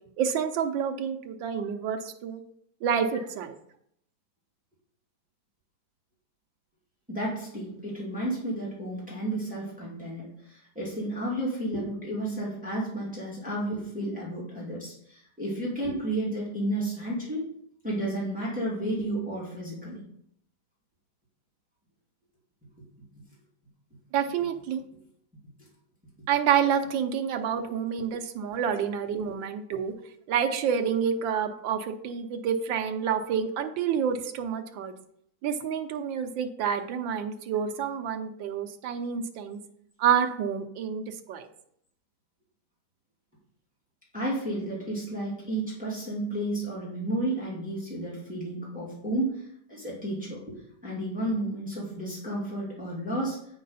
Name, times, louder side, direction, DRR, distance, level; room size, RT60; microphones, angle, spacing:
voice 1, 0.2-2.4 2.8-3.6 24.1-24.8 26.3-29.9 30.3-34.9 35.4-39.6 40.0-41.5, right 7 dB, 80° right, 6 dB, 1.5 m, -28 dB
voice 2, 7.1-17.4 17.8-20.0 44.1-49.4 49.7-50.5 50.8-53.4, right 1 dB, 5° right, -6 dB, 2.5 m, -32 dB
8.4 x 5.4 x 4.1 m, 0.70 s
omnidirectional pair, 2.0 m